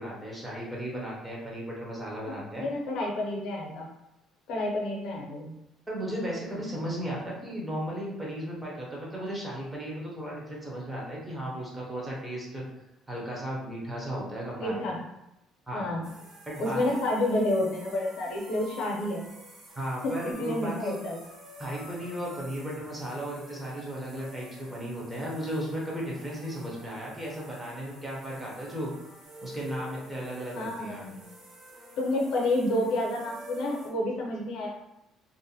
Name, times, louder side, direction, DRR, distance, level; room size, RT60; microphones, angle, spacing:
voice 1, 0.0-2.7 5.9-12.6 13.1-14.7 15.7-15.9 16.5-16.8 19.8-21.0 21.6-28.9 29.4-31.1, equal, 10° right, -4 dB, 0.6 m, -35 dB
voice 2, 2.2-3.9 4.5-5.5 14.6-15.0 15.7-16.1 16.6-19.2 20.0-21.2 30.5-31.2 32.0-34.7, left 1 dB, 65° left, -1 dB, 0.6 m, -29 dB
sound 1, 16.0-33.9, right 1 dB, 45° right, 0.8 m, -48 dB
2.5 x 2.1 x 2.7 m, 0.88 s
cardioid pair, 160°, 0 cm